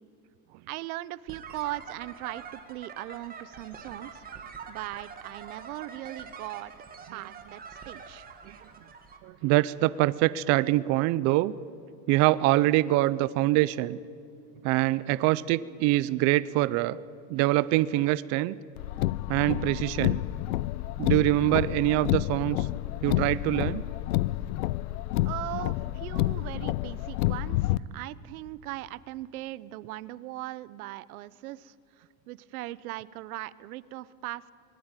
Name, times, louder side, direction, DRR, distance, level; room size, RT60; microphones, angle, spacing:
voice 1, 0.7-4.2 4.7-6.7 7.1-8.3 25.2-34.5, right 17 dB, 80° right, 19 dB, 0.9 m, -39 dB
sound 1, 1.3-9.2, right 6 dB, 20° right, 2.2 m, -45 dB
voice 2, 9.2-11.5 12.1-14.0 14.6-17.0 17.3-18.6 19.3-20.2 21.0-22.7 23.0-23.8, right 17 dB, 40° right, 17 dB, 0.5 m, -24 dB
Car, 18.8-27.8, left 17 dB, 85° left, 0.7 m, -29 dB
23.5 x 19.5 x 9.0 m, 2.4 s
supercardioid pair, 145°, 43 cm